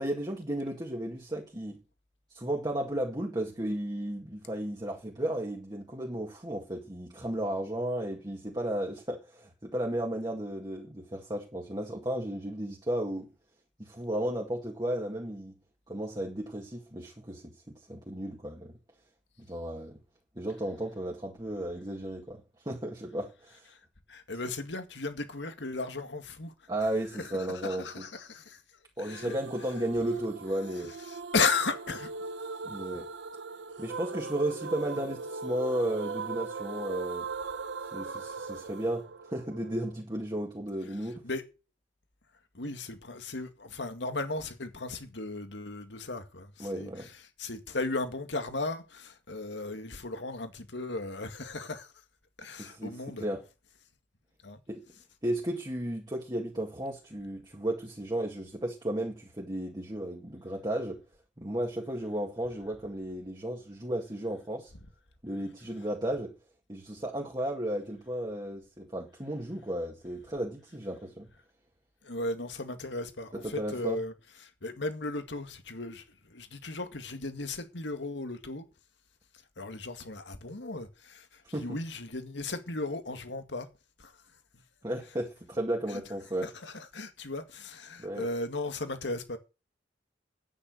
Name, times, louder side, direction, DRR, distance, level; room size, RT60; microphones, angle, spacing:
voice 1, 0.0-1.8 2.3-13.3 13.8-15.5 15.9-18.7 19.5-20.0 20.4-23.7 26.7-28.1 29.0-30.9 32.6-33.1 33.8-37.2 37.9-41.2 46.6-47.1 52.6-52.9 53.2-53.4 54.7-54.8 55.2-61.0 61.4-64.7 65.2-66.3 66.7-71.3 73.3-74.0 81.5-81.7 84.8-86.5 88.0-88.3, right 1 dB, 25° right, 2.0 m, -34 dB
voice 2, 24.1-26.5 27.2-28.6 29.0-29.4 31.1-32.1 41.2-41.4 42.5-51.9 52.4-53.3 54.4-54.6 72.0-74.1 74.4-78.7 79.6-83.7 84.0-84.1 85.9-86.0 86.4-89.4, left 3 dB, 75° left, 2.0 m, -36 dB
sound 1, 29.1-40.0, right 4 dB, 75° right, 0.8 m, -40 dB
10.5 x 9.6 x 6.5 m
head